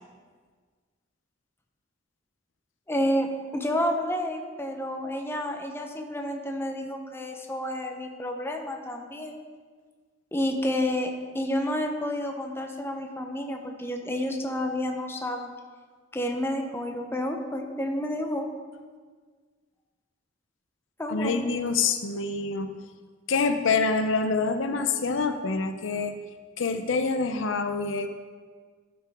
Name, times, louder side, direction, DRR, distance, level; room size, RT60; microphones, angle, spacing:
voice 1, 2.9-9.4 10.3-15.5 16.1-18.5 21.0-21.5, left 1 dB, 10° left, 3 dB, 0.7 m, -30 dB
voice 2, 21.1-22.7 23.3-26.1 26.6-28.1, left 4 dB, 75° left, 8 dB, 0.6 m, -26 dB
12.5 x 6.0 x 3.5 m, 1.5 s
head